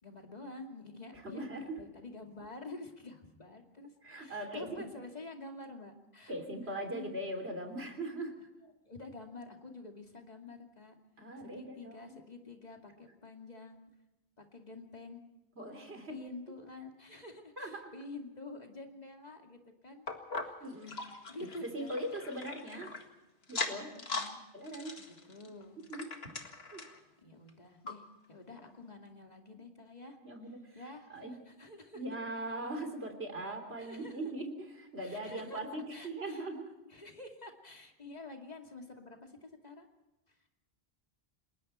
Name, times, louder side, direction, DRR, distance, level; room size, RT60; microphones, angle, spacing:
voice 1, 0.0-1.5 1.8-3.9 4.2-6.3 6.9-7.1 8.8-10.9 11.4-13.8 14.4-15.2 16.1-20.1 20.4-20.5 20.9-22.1 23.9-24.4 25.0-25.8 27.2-28.0 28.3-30.2 30.7-32.0 33.8-34.2 35.0-35.6 35.9-36.5 36.8-39.9, left 2 dB, 40° left, 3 dB, 2.6 m, -48 dB
voice 2, 1.2-1.8 4.0-4.9 6.3-8.4 11.2-12.2 15.6-16.1 17.6-17.9 20.6-20.9 21.4-22.9 23.5-24.0 24.5-25.0 25.9-26.1 26.7-26.8 30.2-30.7 31.1-31.4 31.9-36.7, right 1 dB, 70° right, 5 dB, 3.7 m, -40 dB
sound 1, 20.1-23.0 23.4-24.3 24.6-27.0 27.5-27.6 27.9-28.0 28.6-28.7, left 3 dB, 70° left, 2.2 m, -40 dB
29.5 x 20.5 x 4.4 m, 0.98 s
omnidirectional pair, 1.1 m